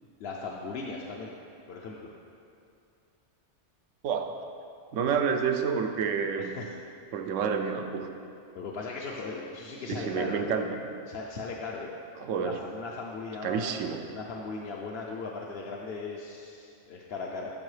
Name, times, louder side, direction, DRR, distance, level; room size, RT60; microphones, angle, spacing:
voice 1, 0.2-1.3 1.7-2.1 6.4-6.7 8.5-10.5 11.1-11.9 12.3-13.7 14.1-17.5, left 4 dB, 65° left, -2 dB, 0.7 m, -38 dB
voice 2, 4.9-6.5 7.1-8.1 9.9-10.8 12.2-12.6 13.4-14.0, right 6 dB, 90° right, 5 dB, 1.0 m, -29 dB
12.5 x 4.6 x 3.2 m, 2.5 s
omnidirectional pair, 1.3 m